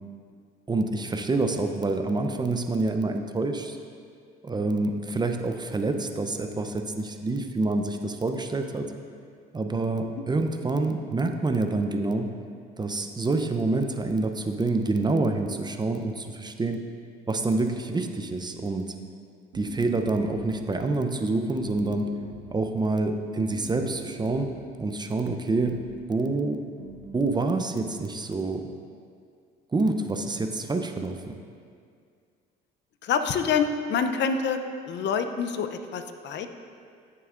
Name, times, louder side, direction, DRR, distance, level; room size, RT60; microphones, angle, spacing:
voice 1, 0.7-3.8 4.4-8.9 9.5-12.3 12.8-16.8 17.3-18.9 19.5-22.1 22.5-25.8 26.1-26.7 27.1-28.7 29.7-31.4, right 3 dB, 20° right, 5 dB, 0.6 m, -27 dB
sound 1, 19.5-20.7 21.5-22.6 23.5-24.6 25.5-26.0 26.8-27.4, right 4 dB, 85° right, 1.1 m, -43 dB
voice 2, 33.0-34.6 34.9-36.5, left 6 dB, 55° left, 8 dB, 0.6 m, -26 dB
14.0 x 6.7 x 2.5 m, 2.2 s
supercardioid pair, 85°, 21 cm